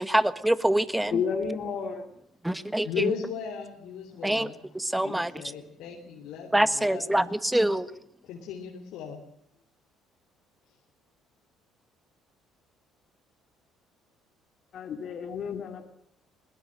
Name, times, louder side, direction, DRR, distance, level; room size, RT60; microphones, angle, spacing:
voice 1, 0.0-1.1 2.4-3.1 4.2-5.4 6.5-7.9, right 1 dB, 10° right, 14 dB, 1.5 m, -25 dB
voice 2, 1.1-2.0 4.9-5.1 14.7-15.8, left 6 dB, 55° left, 5 dB, 2.8 m, -31 dB
voice 3, 2.8-4.6 5.0-7.3 7.7-7.8 8.2-9.2, left 8 dB, 75° left, 0 dB, 3.4 m, -36 dB
21.0 x 19.5 x 7.7 m, 0.67 s
hypercardioid pair, 60°, 0 cm